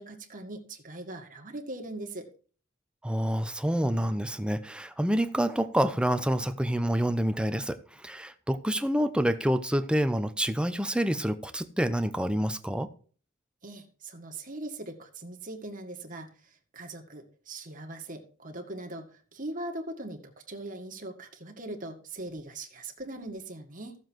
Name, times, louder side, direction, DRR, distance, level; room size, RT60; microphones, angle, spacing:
voice 1, 0.0-2.3 13.6-20.2 20.5-24.0, right 2 dB, 40° right, 2.0 m, -40 dB
voice 2, 3.0-12.9, equal, 5° right, 0.9 m, -27 dB
14.5 x 7.2 x 4.6 m
head